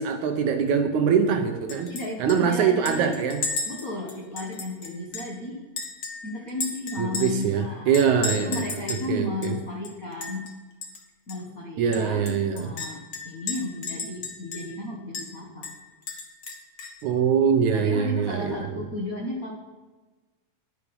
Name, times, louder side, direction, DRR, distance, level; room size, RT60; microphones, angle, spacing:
voice 1, 0.0-1.9 2.2-3.5 7.0-8.5 9.1-9.6 11.8-12.7 17.0-18.5, right 7 dB, 70° right, 6 dB, 2.0 m, -23 dB
Chink clink, 1.7-2.0 2.3-2.4 2.9-5.4 5.8-7.5 7.9-9.1 9.4-9.5 9.8-10.5 10.8-11.0 11.3-11.4 11.9-14.8 15.1-15.3 15.6-17.0, left 4 dB, 50° left, 1.5 m, -34 dB
voice 2, 1.9-3.3 3.6-5.7 6.2-10.4 11.3-15.7 17.7-19.5, left 2 dB, 65° left, -1 dB, 0.8 m, -34 dB
11.0 x 10.0 x 5.5 m, 1.3 s
omnidirectional pair, 4.0 m